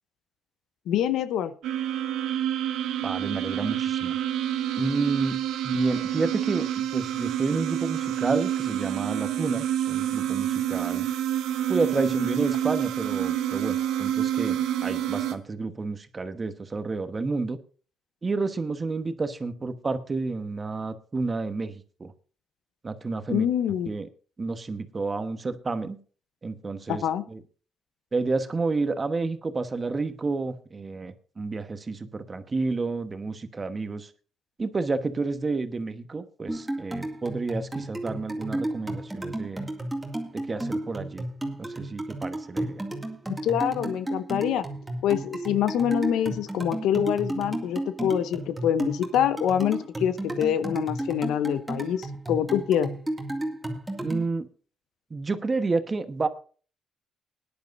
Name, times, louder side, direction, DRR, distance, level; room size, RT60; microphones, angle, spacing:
voice 1, 0.9-1.5 23.3-23.9 26.9-27.2 43.4-44.7 45.0-52.9, left 10 dB, 85° left, 12 dB, 0.8 m, -25 dB
sound 1, 1.6-15.3, right 11 dB, 90° right, 0.9 m, -28 dB
voice 2, 3.0-4.2 4.8-11.1 11.7-17.6 18.2-22.1 22.8-23.5 23.9-24.1 24.4-26.0 26.4-27.0 27.3-27.4 28.1-34.1 34.6-39.7 40.3-41.3 41.6-42.9 54.0-54.5 55.1-56.3, right 3 dB, 30° right, 9 dB, 1.2 m, -30 dB
sound 2, 36.5-54.3, right 1 dB, 10° right, 2.2 m, -33 dB
20.5 x 10.5 x 2.6 m, 0.39 s
cardioid pair, 90°, 0 cm